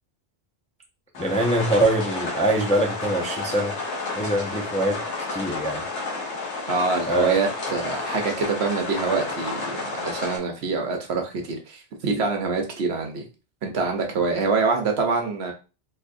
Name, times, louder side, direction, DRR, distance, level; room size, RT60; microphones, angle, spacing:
sound 1, 1.1-10.4, left 3 dB, 85° left, 1.3 m, -31 dB
voice 1, 1.2-3.8 4.1-5.0 5.3-5.9 7.1-7.4, right 1 dB, 10° left, 0.4 m, -23 dB
voice 2, 6.7-13.2 13.6-15.5, right 4 dB, 70° right, 1.1 m, -25 dB
4.0 x 2.8 x 2.5 m
omnidirectional pair, 1.1 m